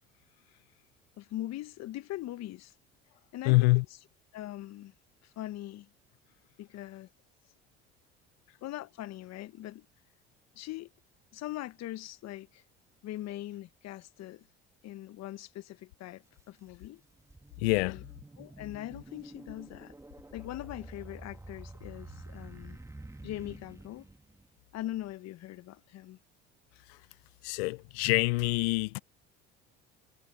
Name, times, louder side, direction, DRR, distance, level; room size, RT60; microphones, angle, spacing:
voice 1, 1.2-2.7 3.3-3.7 4.3-4.9 5.2-5.9 6.6-7.1 8.6-9.9 10.5-10.9 11.3-12.6 13.0-14.5 14.8-17.0 17.8-18.0 18.4-20.0 20.3-22.8 23.2-24.1 24.7-26.2, left 14 dB, 55° left, 1.1 m, -41 dB
voice 2, 3.4-3.8 17.6-18.0 26.9-27.0 27.4-29.0, left 24 dB, 80° left, 0.7 m, -26 dB
sound 1, 16.3-16.4 16.9-24.5, right 2 dB, 10° right, 1.8 m, -49 dB
hypercardioid pair, 65°, 31 cm